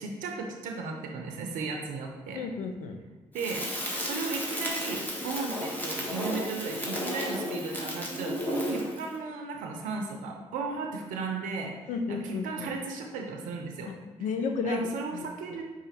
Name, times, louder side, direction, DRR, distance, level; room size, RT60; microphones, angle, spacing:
voice 1, 0.0-2.4 3.3-3.7 4.1-11.7 12.1-13.9 14.6-15.6, right 4 dB, 85° right, 3 dB, 0.5 m, -35 dB
voice 2, 2.3-3.0 11.9-12.7 13.9-14.0 14.2-14.8 15.1-15.3, left 5 dB, 75° left, 5 dB, 0.5 m, -32 dB
Crackle, 3.4-9.1, equal, 15° left, 1.3 m, -33 dB
4.9 x 2.5 x 4.2 m, 1.2 s
supercardioid pair, 45°, 13 cm